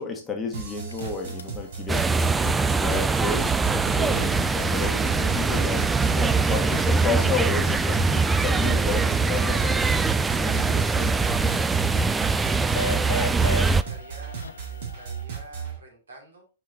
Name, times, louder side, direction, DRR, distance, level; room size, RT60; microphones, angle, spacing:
voice 1, 0.0-2.1 2.7-3.5 4.0-10.1 10.4-11.1, left 4 dB, 15° left, 2 dB, 1.4 m, -32 dB
sound 1, 0.5-15.8, right 6 dB, 55° right, 2.6 m, -36 dB
sound 2, 0.8-15.2, left 3 dB, 75° left, 0.7 m, -40 dB
sound 3, 1.9-13.8, right 4 dB, 10° right, 0.3 m, -23 dB
voice 2, 12.6-14.4 14.7-16.5, right 2 dB, 70° right, 0 dB, 3.0 m, -48 dB
5.9 x 4.5 x 4.1 m, 0.33 s
figure-of-eight pair, 110°, 0 cm